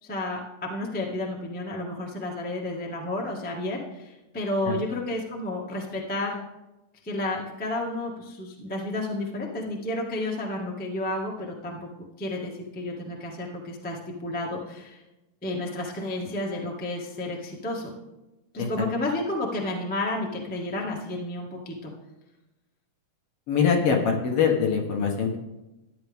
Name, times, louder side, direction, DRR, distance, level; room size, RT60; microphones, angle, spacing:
voice 1, 0.0-6.3 7.0-11.9 12.2-15.0 15.4-17.9 18.5-21.9, left 2 dB, 10° left, -2 dB, 0.4 m, -31 dB
voice 2, 23.5-25.4, left 6 dB, 55° left, 1 dB, 1.9 m, -23 dB
14.0 x 10.5 x 3.5 m, 0.99 s
omnidirectional pair, 3.7 m